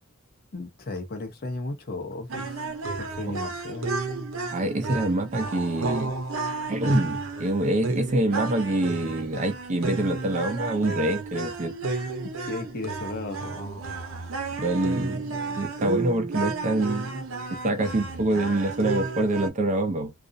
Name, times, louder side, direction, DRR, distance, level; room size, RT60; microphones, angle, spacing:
voice 1, 0.5-2.7 3.0-3.9 12.5-13.8, left 2 dB, 50° left, 0.7 m, -35 dB
sound 1, 2.3-19.5, right 3 dB, 70° right, 0.7 m, -32 dB
voice 2, 4.5-6.2 6.7-11.8 14.6-17.2 17.6-20.1, right 1 dB, 35° right, 0.5 m, -26 dB
2.4 x 2.0 x 2.6 m
head